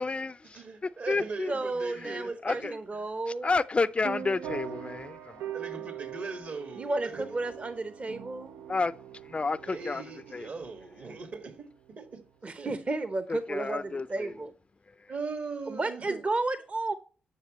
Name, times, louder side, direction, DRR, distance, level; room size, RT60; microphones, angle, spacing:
voice 1, 0.0-0.3 0.8-1.5 2.0-2.8 3.4-5.5 8.7-8.9 9.3-10.5 13.3-14.3, left 3 dB, 35° left, 0.4 m, -31 dB
voice 2, 0.6-2.7 5.5-7.4 9.6-11.7 12.0-12.2 12.6-12.7 15.1-16.2, right 4 dB, 60° right, 1.8 m, -39 dB
voice 3, 1.5-3.5 6.8-8.6 12.4-14.5 15.7-17.0, right 2 dB, 40° right, 0.9 m, -32 dB
sound 1, 4.0-12.1, right 10 dB, 80° right, 0.4 m, -42 dB
10.5 x 6.6 x 3.0 m
supercardioid pair, 50°, 4 cm